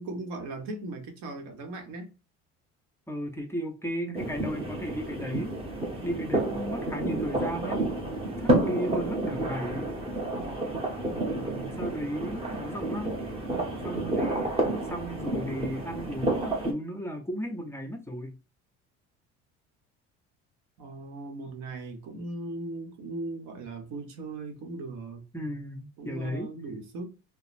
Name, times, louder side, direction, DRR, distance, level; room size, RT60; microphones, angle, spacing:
voice 1, 0.0-2.1 11.1-11.8 20.8-25.2 26.0-27.1, right 2 dB, 90° right, 0.9 m, -38 dB
voice 2, 3.1-5.5 6.0-7.8 8.4-9.9 11.8-13.2 13.8-14.5 14.9-18.4 25.3-26.5, equal, 10° left, 0.5 m, -35 dB
sound 1, 4.1-16.7, right 1 dB, 20° right, 0.9 m, -30 dB
2.9 x 2.0 x 2.4 m
cardioid pair, 110°, 30 cm